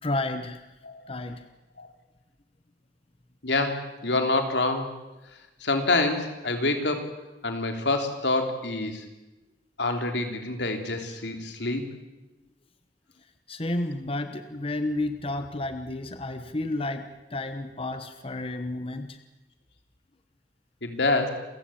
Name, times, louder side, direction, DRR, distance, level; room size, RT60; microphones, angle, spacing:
voice 1, 0.0-0.6 1.1-1.4 13.5-19.2, left 2 dB, 35° left, 8 dB, 1.1 m, -31 dB
voice 2, 3.4-4.9 5.6-7.0 7.4-9.0 9.8-11.9 20.8-21.3, left 2 dB, 85° left, 5 dB, 3.5 m, -26 dB
28.5 x 15.5 x 8.7 m, 1.1 s
head